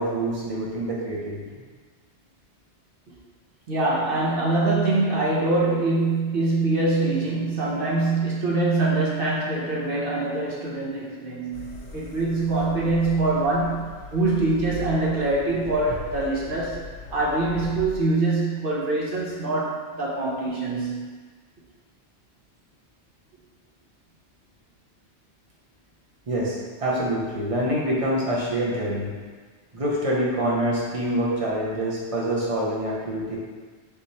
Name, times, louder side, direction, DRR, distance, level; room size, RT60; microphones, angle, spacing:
voice 1, 0.0-1.6 26.3-29.1 29.7-33.4, right 1 dB, 35° right, -4 dB, 0.8 m, -26 dB
voice 2, 3.7-16.8 17.1-21.0, right 2 dB, 55° right, -5 dB, 1.0 m, -24 dB
sound 1, 11.5-18.0, left 3 dB, 80° left, 0.9 m, -39 dB
3.7 x 3.1 x 4.1 m, 1.5 s
omnidirectional pair, 1.2 m